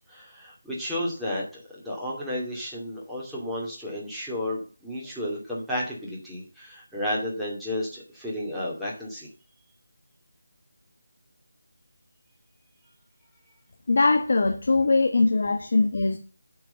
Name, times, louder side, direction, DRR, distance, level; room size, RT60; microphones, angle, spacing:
voice 1, 0.0-9.3, left 1 dB, ahead, -8 dB, 2.5 m, -32 dB
voice 2, 13.9-16.2, left 3 dB, 55° left, 5 dB, 1.3 m, -21 dB
9.2 x 4.7 x 7.0 m, 0.36 s
figure-of-eight pair, 165°, 0 cm